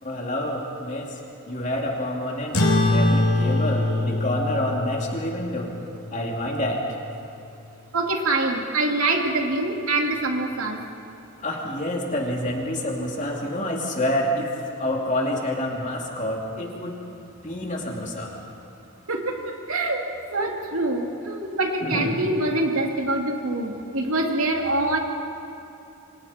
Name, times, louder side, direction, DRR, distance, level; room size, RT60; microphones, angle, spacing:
voice 1, 0.0-1.2 1.5-5.8 6.1-6.9 11.4-17.0 17.4-18.3 21.8-22.2, left 1 dB, 35° left, -1 dB, 2.7 m, -28 dB
sound 1, 2.5-7.4, left 2 dB, 90° left, 3.1 m, -24 dB
voice 2, 7.9-10.8 19.1-20.1 20.3-25.0, right 2 dB, 75° right, 1 dB, 2.6 m, -25 dB
28.5 x 25.0 x 4.4 m, 2.8 s
head